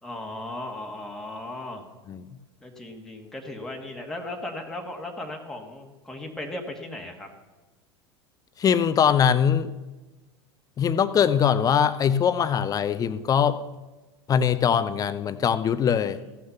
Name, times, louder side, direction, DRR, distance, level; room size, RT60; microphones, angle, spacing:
voice 1, 0.0-1.8 2.6-7.3 16.1-16.4, left 1 dB, 5° left, 0 dB, 1.7 m, -37 dB
voice 2, 8.6-9.7 10.8-13.6 14.3-16.2, left 8 dB, 25° left, 14 dB, 0.7 m, -22 dB
15.0 x 6.4 x 7.0 m, 1.2 s
figure-of-eight pair, 85°, 14 cm